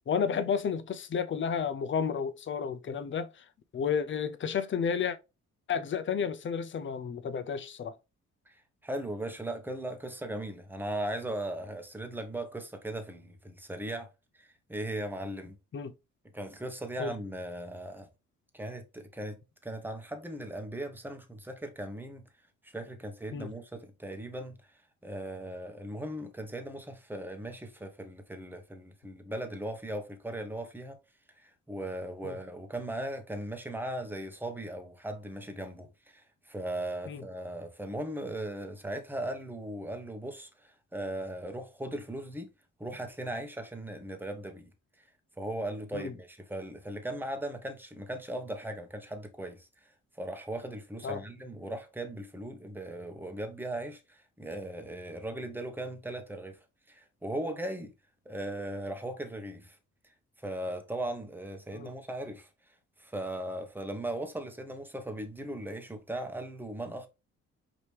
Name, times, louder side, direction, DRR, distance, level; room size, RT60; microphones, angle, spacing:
voice 1, 0.1-3.3 3.7-5.2 5.7-7.9 15.7-15.9 17.0-17.1 23.3-23.5 32.2-32.4 37.1-37.2 45.9-46.1 51.0-51.2 61.7-61.9, left 6 dB, 40° left, 0.7 m, -31 dB
voice 2, 8.5-14.1 14.3-15.6 16.3-18.1 18.5-22.2 22.6-24.6 25.0-31.0 31.4-42.5 42.8-44.7 45.4-49.7 50.2-56.6 56.9-57.9 58.2-59.8 60.4-62.5 63.0-67.1, right 1 dB, 5° right, 1.1 m, -38 dB
5.1 x 2.9 x 3.3 m
cardioid pair, 90°, 30 cm